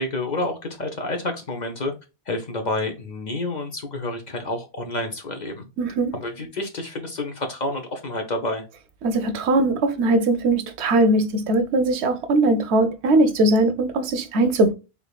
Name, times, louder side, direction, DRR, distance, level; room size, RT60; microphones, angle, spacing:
voice 1, 0.0-1.9 2.3-5.7 6.1-8.7, left 2 dB, 50° left, 0.7 m, -29 dB
voice 2, 5.8-6.1 9.0-14.7, right 2 dB, 85° right, 1.0 m, -20 dB
3.6 x 3.4 x 2.3 m
omnidirectional pair, 1.1 m